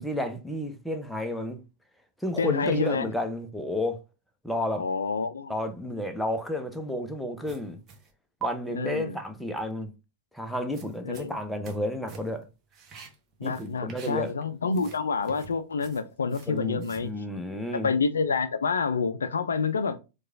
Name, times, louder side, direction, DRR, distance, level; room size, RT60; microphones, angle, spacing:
voice 1, 0.0-1.6 2.2-4.0 4.4-4.9 5.5-7.8 8.4-9.9 10.3-12.5 13.4-14.3 16.5-17.9, left 1 dB, ahead, 0.6 m, -31 dB
voice 2, 2.4-3.1 4.8-5.5 8.7-9.2 11.0-11.4 13.4-17.1 17.7-20.0, left 5 dB, 75° left, 0.3 m, -28 dB
sound 1, 7.4-8.1 8.4-8.5 10.5-11.8 12.1-12.4 12.7-14.4 14.7-17.1, right 7 dB, 30° right, 0.8 m, -44 dB
4.6 x 2.3 x 2.6 m
figure-of-eight pair, 95°, 0 cm